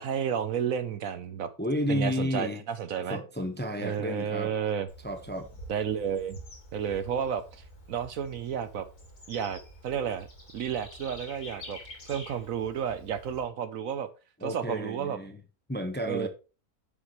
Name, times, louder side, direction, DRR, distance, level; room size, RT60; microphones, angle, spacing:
voice 1, 0.0-1.5 1.9-3.2 3.8-4.9 5.7-6.4 6.7-8.9 9.3-10.3 10.5-11.8 12.1-14.1 14.4-15.2 16.1-16.3, right 8 dB, 65° right, 1.1 m, -31 dB
voice 2, 1.6-2.6 3.1-4.5 5.0-5.5 14.4-15.4 15.7-16.3, equal, 10° left, 0.8 m, -31 dB
Bird / Insect, 4.9-13.4, equal, 85° left, 3.4 m, -48 dB
10.5 x 7.1 x 3.1 m
omnidirectional pair, 1.7 m